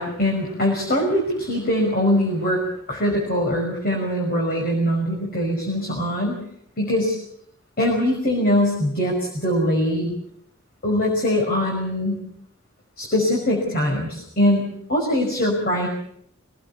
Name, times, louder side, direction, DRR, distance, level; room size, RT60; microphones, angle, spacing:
voice 1, 0.0-6.4 6.8-7.2 7.8-10.1 10.8-12.2 13.0-15.9, left 1 dB, 45° left, 0 dB, 5.5 m, -22 dB
25.5 x 18.5 x 7.0 m, 0.71 s
head